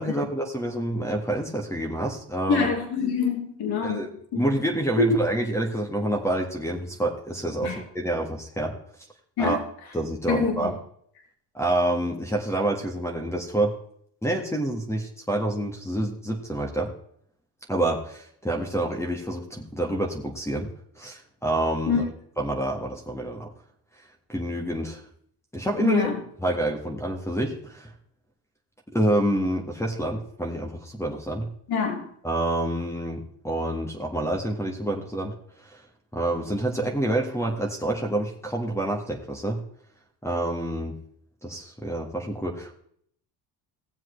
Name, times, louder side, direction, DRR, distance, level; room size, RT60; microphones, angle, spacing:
voice 1, 0.0-2.7 3.8-4.1 4.3-8.7 9.4-9.6 9.9-10.7 11.5-13.7 14.2-16.9 17.7-20.7 21.0-22.1 22.4-23.5 24.3-25.0 25.5-26.1 26.4-27.9 28.9-31.5 32.2-35.3 35.6-35.8 36.1-39.6 40.2-40.9 41.4-42.7, right 1 dB, 5° left, 1.5 m, -27 dB
voice 2, 2.5-4.4 5.0-5.1 7.6-7.8 9.4-9.6 10.3-10.7 21.9-22.0 25.8-26.2 31.7-32.0, left 5 dB, 65° left, 3.1 m, -25 dB
17.0 x 7.5 x 3.2 m
cardioid pair, 105°, 40 cm